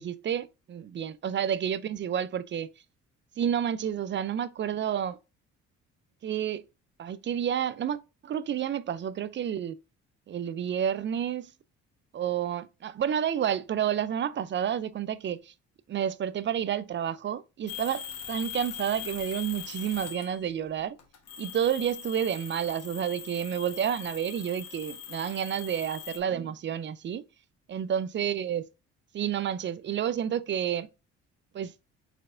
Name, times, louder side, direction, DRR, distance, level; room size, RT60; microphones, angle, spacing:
voice 1, 0.0-2.7 3.4-5.2 6.2-6.6 7.0-9.8 10.3-11.5 12.1-15.5 15.9-18.0 18.3-21.0 21.4-27.2 27.7-28.7 29.1-30.9 31.5-31.7, right 9 dB, 40° right, 0.4 m, -30 dB
sound 1, 17.7-20.5 21.0-26.2, left 8 dB, 55° left, 1.2 m, -41 dB
4.4 x 4.0 x 2.5 m
supercardioid pair, 75°, 30 cm